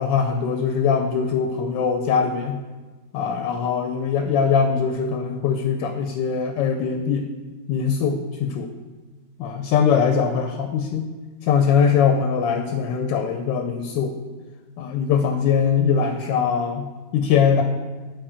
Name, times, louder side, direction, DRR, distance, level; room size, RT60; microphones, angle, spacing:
voice 1, 0.0-2.6 3.1-7.3 7.7-8.7 9.4-11.1 11.4-14.1 14.8-16.9 17.1-17.6, left 6 dB, 75° left, 6 dB, 1.2 m, -21 dB
7.9 x 4.1 x 4.9 m, 1.3 s
omnidirectional pair, 2.1 m